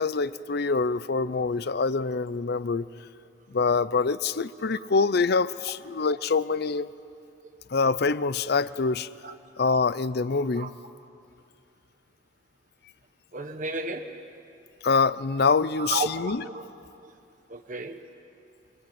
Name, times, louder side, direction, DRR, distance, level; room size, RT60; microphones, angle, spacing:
voice 1, 0.0-2.9 3.5-6.9 7.7-9.1 9.6-10.7 14.8-16.4, left 4 dB, 55° left, 16 dB, 0.6 m, -25 dB
voice 2, 13.3-14.2 15.8-16.7 17.0-17.1 17.5-18.0, right 3 dB, 45° right, 6 dB, 1.1 m, -33 dB
29.5 x 23.0 x 8.8 m, 2.5 s
head